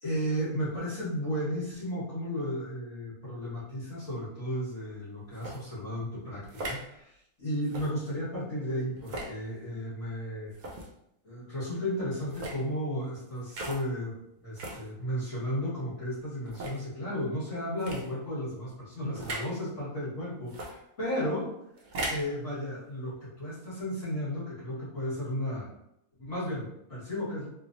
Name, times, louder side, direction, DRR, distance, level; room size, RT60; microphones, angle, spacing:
voice 1, 0.0-7.1 7.4-10.5 11.2-21.5 22.1-25.7 26.2-27.5, equal, 50° left, -10 dB, 2.0 m, -34 dB
sound 1, 5.3-5.6 6.4-6.8 7.6-7.9 9.0-9.3 10.5-10.9 12.2-12.6 13.5-13.8 14.6-14.8 15.5-15.6 16.4-16.8 17.8-18.0 19.2-19.5 20.5-20.7 21.8-22.3, right 1 dB, 75° right, 0.4 m, -37 dB
3.5 x 3.1 x 2.5 m, 0.80 s
omnidirectional pair, 1.6 m